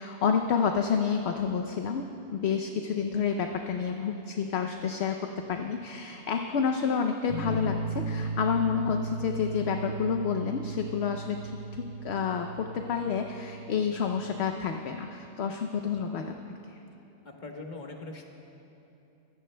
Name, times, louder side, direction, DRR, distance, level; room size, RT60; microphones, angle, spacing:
voice 1, 0.0-16.6, left 6 dB, 60° left, 4 dB, 0.8 m, -29 dB
sound 1, 7.3-14.5, right 3 dB, 45° right, 1.7 m, -37 dB
voice 2, 17.2-18.2, left 2 dB, 35° left, 1 dB, 1.3 m, -43 dB
23.5 x 16.0 x 2.2 m, 2.9 s
omnidirectional pair, 1.4 m